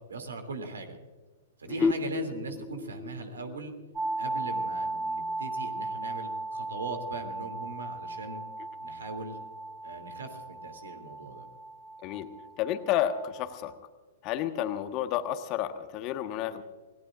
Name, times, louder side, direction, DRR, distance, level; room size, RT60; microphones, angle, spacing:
voice 1, 0.1-1.0 1.6-3.7 4.2-8.4 8.8-9.4 9.8-11.4, right 3 dB, 70° right, 6 dB, 2.9 m, -39 dB
sound 1, 1.8-5.2, left 4 dB, 10° left, 0.6 m, -34 dB
sound 2, 4.0-13.7, right 2 dB, 15° right, 2.2 m, -37 dB
voice 2, 12.6-13.7 14.2-16.6, left 11 dB, 35° left, 9 dB, 1.3 m, -31 dB
27.0 x 18.5 x 2.5 m, 1.3 s
figure-of-eight pair, 110°, 0 cm